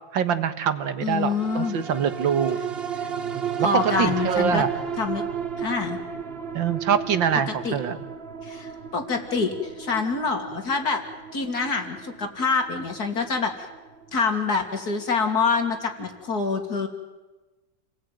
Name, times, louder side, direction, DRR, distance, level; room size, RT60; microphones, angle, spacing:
voice 1, 0.1-2.6 3.3-4.7 6.5-8.0, right 8 dB, 75° right, 10 dB, 2.1 m, -24 dB
voice 2, 1.0-1.8 3.6-4.6 5.0-5.2 5.6-6.0 7.5-7.8 8.4-11.0 11.3-13.5 14.1-16.9, left 4 dB, 50° left, 4 dB, 3.3 m, -26 dB
sound 1, 1.1-15.8 16.2-16.3, right 7 dB, 40° right, 1.1 m, -34 dB
29.0 x 19.5 x 9.3 m, 1.2 s
omnidirectional pair, 2.1 m